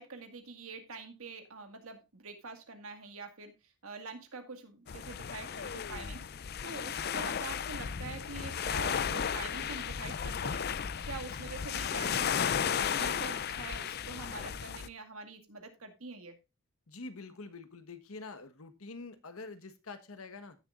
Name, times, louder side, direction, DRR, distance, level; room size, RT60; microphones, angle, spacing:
voice 1, 0.0-3.5 3.8-6.3 6.6-10.7 11.1-16.4, right 3 dB, 90° right, 2.1 m, -45 dB
sound 1, 4.9-14.9, left 7 dB, 50° left, 0.5 m, -34 dB
voice 2, 16.9-20.6, left 3 dB, 90° left, 1.4 m, -46 dB
16.0 x 7.0 x 2.5 m
head